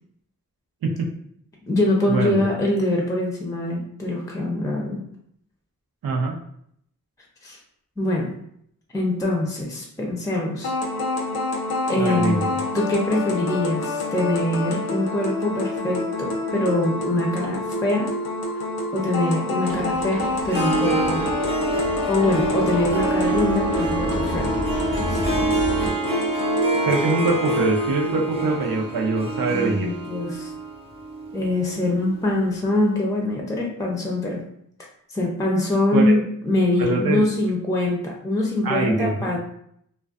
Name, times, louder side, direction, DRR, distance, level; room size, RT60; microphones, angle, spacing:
voice 1, 1.7-5.0 7.4-7.6 8.0-8.3 8.9-10.7 11.9-12.4 12.7-18.1 18.9-21.2 22.1-24.5 25.1-25.2 29.5-30.5 31.3-34.4 35.1-39.4, left 1 dB, 10° left, -1 dB, 0.5 m, -23 dB
voice 2, 6.0-6.3 12.0-12.4 26.9-29.9 35.9-36.1 36.8-37.2 38.6-39.4, right 3 dB, 90° right, 0 dB, 0.6 m, -23 dB
sound 1, 10.6-27.6, left 2 dB, 90° left, 0.5 m, -28 dB
sound 2, 19.7-25.9, right 1 dB, 40° right, 0.8 m, -31 dB
Harp, 20.4-32.3, right 2 dB, 15° right, 0.8 m, -26 dB
2.4 x 2.2 x 2.4 m, 0.71 s
cardioid pair, 55°, 35 cm